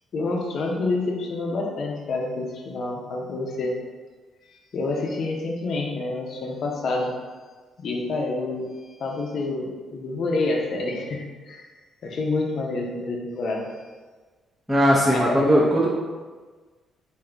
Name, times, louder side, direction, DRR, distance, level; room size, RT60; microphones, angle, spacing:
voice 1, 0.1-3.8 4.7-7.1 7.8-8.7 9.0-11.7 12.0-13.7 15.1-15.5, left 2 dB, 60° left, 0 dB, 0.7 m, -28 dB
voice 2, 14.7-15.9, equal, 5° right, -7 dB, 0.7 m, -18 dB
3.6 x 2.7 x 3.4 m, 1.4 s
cardioid pair, 90°, 0 cm